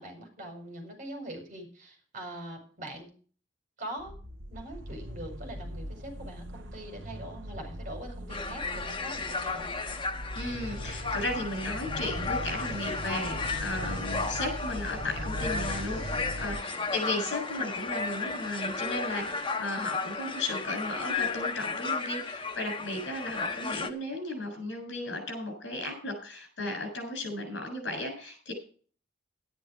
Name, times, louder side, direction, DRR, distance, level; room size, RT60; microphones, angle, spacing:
voice 1, 0.0-3.1 3.8-4.2 4.5-9.8 16.6-17.2, right 1 dB, 45° right, 4 dB, 5.1 m, -43 dB
sound 1, 4.0-16.6, equal, 85° right, 1.4 m, -39 dB
sound 2, 8.3-23.9, left 4 dB, 25° left, 1.2 m, -34 dB
voice 2, 10.4-16.0 16.4-28.5, left 2 dB, 70° left, 5 dB, 7.4 m, -35 dB
12.5 x 10.5 x 4.8 m, 0.41 s
head